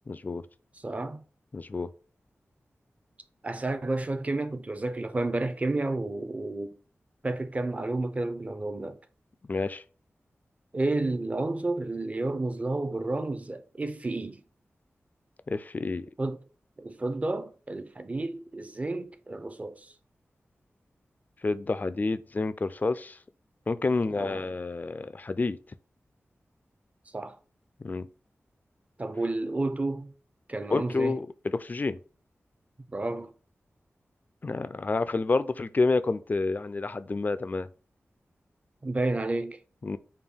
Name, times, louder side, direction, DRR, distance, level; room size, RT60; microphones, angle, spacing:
voice 1, 0.1-0.4 1.5-1.9 9.5-9.8 15.5-16.1 21.4-23.2 23.7-25.6 27.8-28.1 30.7-32.0 34.4-37.7 39.8-40.0, left 3 dB, 40° left, 0.3 m, -29 dB
voice 2, 0.7-1.2 3.4-6.7 7.2-9.0 10.7-14.4 16.2-16.4 16.8-19.9 24.1-24.5 27.1-27.4 29.0-30.1 30.5-31.2 32.9-33.3 38.8-39.6, right 2 dB, 30° right, 0.5 m, -31 dB
5.2 x 2.2 x 3.5 m
wide cardioid pair, 70°, 5 cm